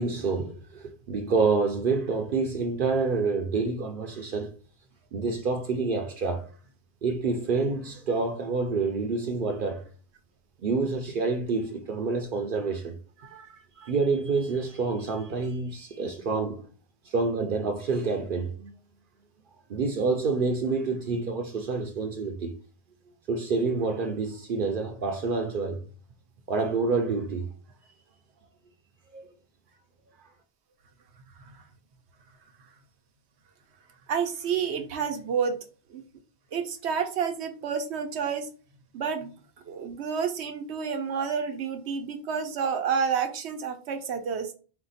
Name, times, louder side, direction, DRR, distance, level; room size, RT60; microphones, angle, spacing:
voice 1, 0.0-4.5 5.1-6.5 7.0-9.8 10.6-13.0 13.8-16.6 17.1-18.7 19.7-22.5 23.3-25.8 26.5-27.5 29.1-29.3, right 4 dB, 60° right, 0.7 m, -28 dB
voice 2, 13.2-13.9 31.4-31.6 34.1-35.5 35.9-36.0 36.5-38.5 38.9-39.3 39.7-44.5, right 6 dB, 85° right, 1.0 m, -30 dB
4.4 x 2.3 x 4.0 m
omnidirectional pair, 1.1 m